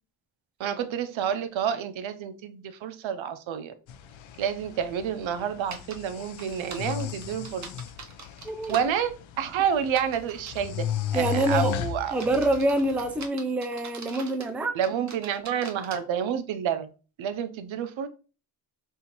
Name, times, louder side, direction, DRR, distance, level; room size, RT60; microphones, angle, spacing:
voice 1, 0.6-3.7 4.4-7.7 8.7-10.8 11.1-12.2 14.7-16.9 17.2-18.1, right 8 dB, 80° right, 0.7 m, -29 dB
sound 1, 3.9-13.3, left 10 dB, 80° left, 0.6 m, -35 dB
sound 2, 5.7-6.0 6.4-8.9 9.9-10.7 11.3-11.6 12.1-14.5 14.8-16.0, right 4 dB, 40° right, 0.8 m, -43 dB
voice 2, 8.4-8.8 11.1-11.7 12.1-14.8, right 1 dB, 5° right, 0.3 m, -26 dB
5.6 x 2.5 x 2.9 m
cardioid pair, 90°, 46 cm